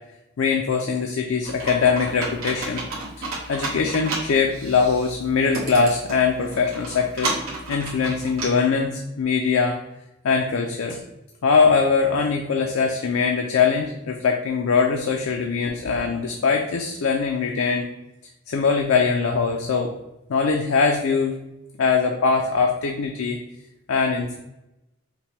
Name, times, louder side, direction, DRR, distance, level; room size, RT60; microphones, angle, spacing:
voice 1, 0.4-2.9 3.2-7.3 7.7-9.8 10.2-11.0 11.4-17.9 18.5-19.9 20.3-21.4 21.8-23.4 23.9-24.4, left 5 dB, 70° left, 2 dB, 0.4 m, -22 dB
Computer keyboard, 1.4-8.5, right 2 dB, 80° right, 1.5 m, -32 dB
5.8 x 2.2 x 3.1 m, 0.92 s
head